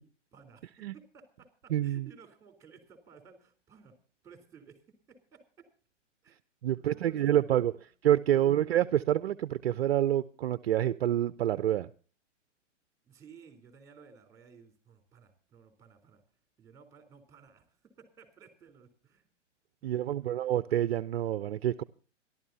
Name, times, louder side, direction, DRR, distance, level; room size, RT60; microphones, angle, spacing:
voice 1, 0.3-4.0 4.2-5.7 6.2-6.4 6.7-7.8 8.3-9.0 13.0-16.2 16.6-19.3 19.8-20.3, right 6 dB, 10° right, 6 dB, 3.6 m, -56 dB
voice 2, 1.7-2.1 6.6-7.7 8.0-11.9 19.8-21.8, right 12 dB, 55° right, 14 dB, 0.6 m, -27 dB
26.0 x 12.5 x 2.8 m, 0.38 s
hypercardioid pair, 130°, 37 cm